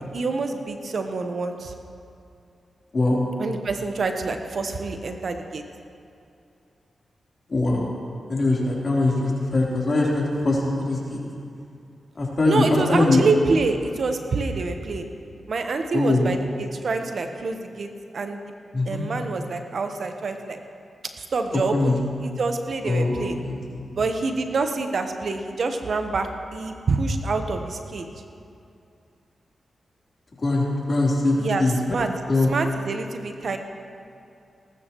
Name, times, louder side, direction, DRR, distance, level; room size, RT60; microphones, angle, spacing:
voice 1, 0.1-1.7 3.4-5.6 12.4-15.0 15.5-17.9 18.1-18.4 18.9-20.6 21.2-22.0 22.2-23.4 24.0-28.1 31.4-32.1 32.4-33.6, right 3 dB, 65° right, 6 dB, 1.0 m, -26 dB
voice 2, 7.5-7.9 8.3-11.2 12.2-13.2 15.9-16.3 18.7-19.1 21.5-22.0 22.8-23.8 30.4-32.0 32.3-32.5, left 2 dB, 50° left, -4 dB, 3.6 m, -22 dB
18.5 x 13.0 x 3.1 m, 2.5 s
supercardioid pair, 40°, 0 cm